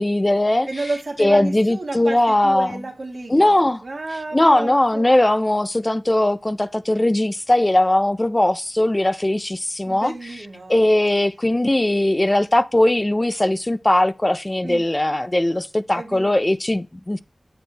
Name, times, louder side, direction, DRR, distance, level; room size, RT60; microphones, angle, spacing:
voice 1, 0.0-0.7 1.2-2.7 3.3-3.8 4.3-10.1 10.7-17.2, left 1 dB, 30° left, 0.3 m, -19 dB
voice 2, 0.7-3.5 3.8-5.0 9.9-10.8 14.6-14.8 15.9-16.3, right 2 dB, 75° right, 1.5 m, -31 dB
8.9 x 6.7 x 2.2 m
wide cardioid pair, 50°, 0 cm